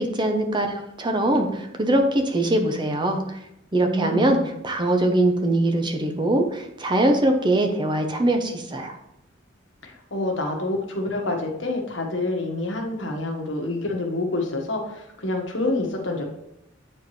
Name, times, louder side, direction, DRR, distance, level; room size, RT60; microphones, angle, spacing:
voice 1, 0.0-3.2 3.7-4.4 4.6-8.9, right 1 dB, 25° right, 4 dB, 0.7 m, -22 dB
voice 2, 3.7-4.4 9.8-16.2, left 2 dB, 75° left, 2 dB, 1.3 m, -27 dB
8.6 x 4.5 x 3.1 m, 0.84 s
head